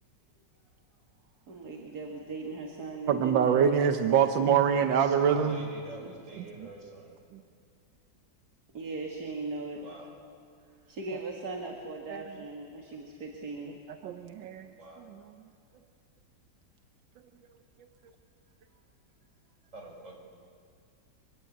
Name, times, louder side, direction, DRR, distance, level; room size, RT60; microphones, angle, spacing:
voice 1, 1.5-3.8 4.1-4.3 6.0-6.1 8.7-9.8 10.9-13.8, right 3 dB, 60° right, 1 dB, 2.4 m, -38 dB
voice 2, 3.1-5.7 6.4-6.7 12.1-12.2 13.9-14.7 15.1-15.2, right 8 dB, 90° right, 7 dB, 1.7 m, -25 dB
voice 3, 5.0-7.2 9.8-10.1 14.8-15.0 19.7-20.2, right 2 dB, 40° right, 0 dB, 6.2 m, -46 dB
25.0 x 24.5 x 8.4 m, 2.2 s
omnidirectional pair, 2.0 m